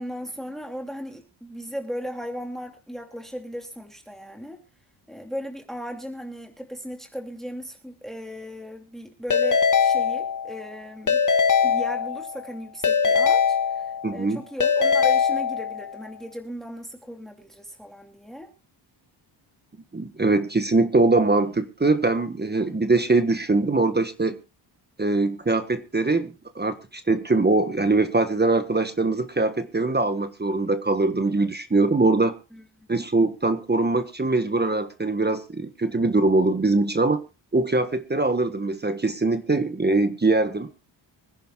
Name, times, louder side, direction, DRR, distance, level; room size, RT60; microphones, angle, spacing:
voice 1, 0.0-4.6 5.1-11.2 11.6-18.5 32.5-32.6, equal, ahead, 2.6 m, -36 dB
Keyboard (musical) / Ringtone, 9.3-10.6 11.1-12.4 12.8-14.2 14.6-15.9, left 6 dB, 40° left, 1.7 m, -21 dB
voice 2, 14.0-14.4 19.9-24.3 25.0-32.3 32.9-37.2 37.5-40.7, right 3 dB, 20° right, 1.4 m, -22 dB
25.5 x 10.5 x 2.4 m
cardioid pair, 65°, 47 cm